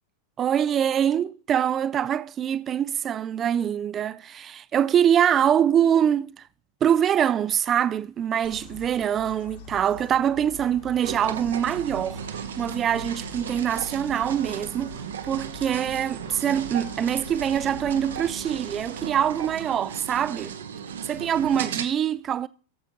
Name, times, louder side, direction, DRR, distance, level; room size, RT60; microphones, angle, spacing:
voice 1, 0.4-6.3 6.8-12.2 12.6-20.6 21.1-22.5, right 9 dB, 25° right, 0.5 m, -24 dB
sound 1, 8.4-19.7, left 6 dB, 55° left, 2.2 m, -45 dB
sound 2, 11.0-21.8, right 8 dB, 65° right, 1.0 m, -36 dB
17.5 x 7.6 x 2.8 m
figure-of-eight pair, 90°, 0 cm